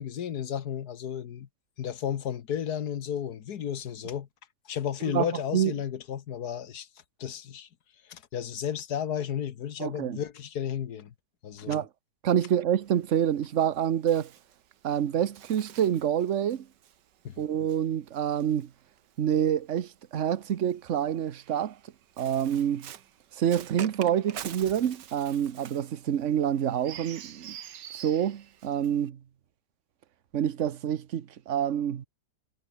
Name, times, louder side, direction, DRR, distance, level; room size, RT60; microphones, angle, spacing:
voice 1, 0.0-1.5 1.8-4.3 4.7-6.9 7.2-7.7 8.1-11.1 11.4-11.8 17.2-17.4, left 9 dB, 65° left, 1.6 m, -33 dB
voice 2, 9.8-10.2 11.7-11.9 12.2-14.3 14.8-16.7 17.4-18.7 19.2-21.8 22.2-22.9 23.3-27.6 27.9-29.2 30.3-32.1, right 9 dB, 50° right, 1.1 m, -27 dB
Bird, 12.8-19.4 20.3-29.1, right 10 dB, 75° right, 1.7 m, -47 dB
omnidirectional pair, 1.9 m